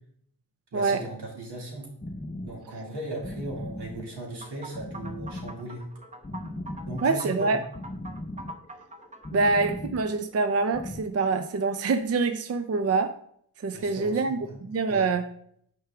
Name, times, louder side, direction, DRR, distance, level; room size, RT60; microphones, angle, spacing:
voice 1, 0.7-1.9 2.4-5.9 6.9-7.6 13.7-14.6 14.9-15.1, right 1 dB, 75° right, -2 dB, 2.6 m, -37 dB
sound 1, 2.0-11.0, left 1 dB, 15° left, 0.6 m, -39 dB
sound 2, 4.4-9.5, right 2 dB, 20° right, 0.9 m, -44 dB
voice 2, 7.0-7.6 9.3-13.1 13.6-14.4 14.7-15.2, right 4 dB, 40° right, 9 dB, 0.5 m, -25 dB
6.5 x 4.7 x 4.8 m, 0.67 s
cardioid pair, 60°, 40 cm